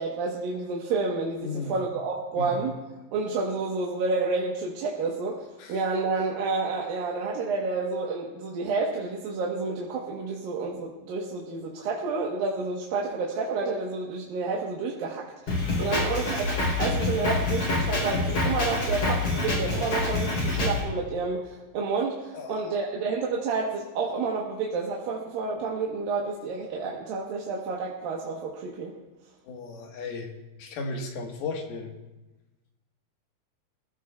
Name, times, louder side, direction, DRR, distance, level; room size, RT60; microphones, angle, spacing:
voice 1, 0.0-2.7 3.1-5.4 5.7-28.9, right 4 dB, 70° right, -3 dB, 2.9 m, -30 dB
voice 2, 1.4-1.8 2.4-2.6 5.6-5.8 15.8-16.0 22.3-23.1 29.4-30.3 30.6-31.9, left 3 dB, 80° left, 2 dB, 3.4 m, -35 dB
Drum kit, 15.5-20.8, left 2 dB, 45° left, 4.8 m, -26 dB
25.0 x 15.5 x 2.3 m, 1.1 s
omnidirectional pair, 4.4 m